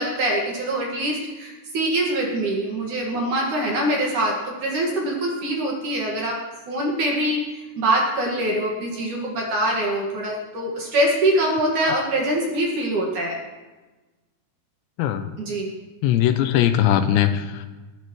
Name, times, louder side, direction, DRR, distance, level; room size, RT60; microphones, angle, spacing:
voice 1, 0.0-6.4 6.7-7.4 7.8-13.4 15.4-15.7, right 1 dB, 55° right, -1 dB, 2.7 m, -24 dB
voice 2, 15.0-15.3 16.0-17.7, left 11 dB, 85° left, 9 dB, 2.8 m, -20 dB
20.0 x 13.5 x 3.1 m, 1.2 s
omnidirectional pair, 5.3 m